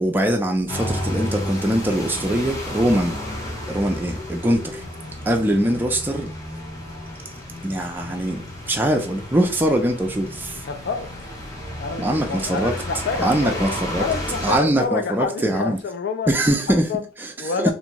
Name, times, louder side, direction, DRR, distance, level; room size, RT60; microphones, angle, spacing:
voice 1, 0.0-3.2 3.7-4.8 5.3-6.3 7.6-10.6 12.0-12.7 13.2-14.1 14.4-15.8 16.3-16.9 17.2-17.3 17.6-17.7, right 1 dB, 10° right, 0.4 m, -22 dB
sound 1, 0.7-14.6, left 1 dB, 20° left, 0.7 m, -32 dB
voice 2, 10.6-11.1 11.8-13.6 14.0-16.3 16.7-17.0 17.4-17.7, left 5 dB, 60° left, 0.4 m, -28 dB
2.5 x 2.3 x 2.9 m
head